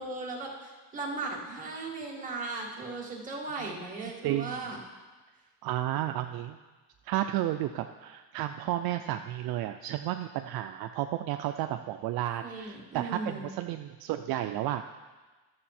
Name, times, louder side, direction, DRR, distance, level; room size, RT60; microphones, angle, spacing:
voice 1, 0.0-4.8 12.4-13.5, right 3 dB, 20° right, -3 dB, 2.0 m, -37 dB
voice 2, 4.2-4.6 5.6-6.6 7.0-14.8, right 13 dB, 60° right, 7 dB, 0.5 m, -32 dB
12.5 x 6.9 x 4.3 m, 1.3 s
cardioid pair, 145°, 41 cm